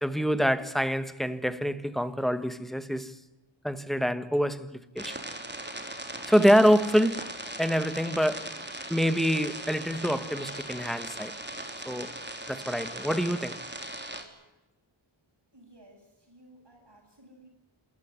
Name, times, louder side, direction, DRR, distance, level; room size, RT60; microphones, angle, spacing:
voice 1, 0.0-3.2 3.6-5.2 6.3-7.3 7.6-8.5 8.9-11.3 11.8-12.1 12.5-13.6, equal, ahead, 1.5 m, -26 dB
sound 1, 5.0-14.2, right 1 dB, 20° right, 3.5 m, -39 dB
voice 2, 15.5-17.5, right 1 dB, 60° right, 7.8 m, -56 dB
27.5 x 14.5 x 9.6 m
wide cardioid pair, 55°, 47 cm